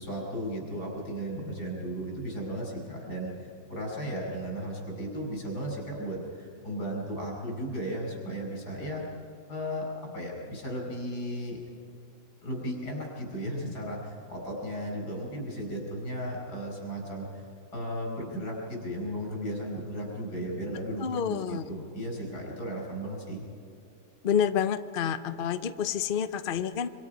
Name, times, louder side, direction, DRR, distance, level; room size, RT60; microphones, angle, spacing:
voice 1, 0.0-9.0 9.5-11.6 12.4-23.4, equal, 85° left, -1 dB, 5.9 m, -35 dB
voice 2, 21.0-21.6 24.2-26.9, left 8 dB, 50° left, 11 dB, 0.7 m, -28 dB
26.0 x 25.5 x 5.2 m, 2.4 s
omnidirectional pair, 1.7 m